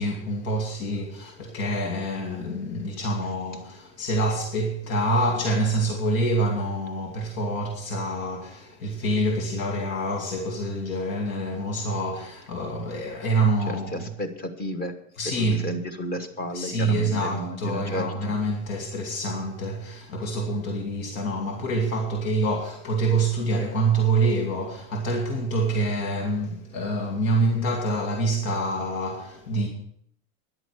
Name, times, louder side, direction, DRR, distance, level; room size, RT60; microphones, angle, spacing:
voice 1, 0.0-14.0 15.2-15.7 16.5-29.7, right 2 dB, 80° left, 2.4 m, -26 dB
voice 2, 13.7-14.9 15.2-18.1 20.2-20.3, equal, 20° left, 1.1 m, -32 dB
13.5 x 10.5 x 4.8 m
cardioid pair, 180°, 41 cm